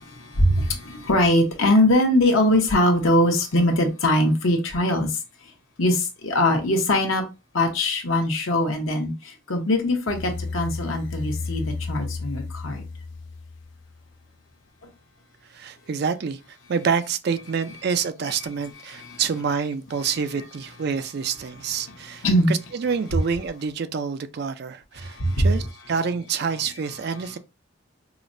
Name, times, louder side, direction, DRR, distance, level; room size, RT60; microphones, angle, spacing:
voice 1, 0.0-5.2 5.8-7.2 7.5-12.8 19.0-19.2 22.2-22.5 25.0-25.5, left 1 dB, 80° left, 0.9 m, -21 dB
sound 1, 10.1-14.1, left 3 dB, 60° left, 0.5 m, -33 dB
voice 2, 15.5-16.4 16.7-27.4, right 6 dB, 50° right, 0.4 m, -27 dB
4.8 x 2.1 x 2.5 m
head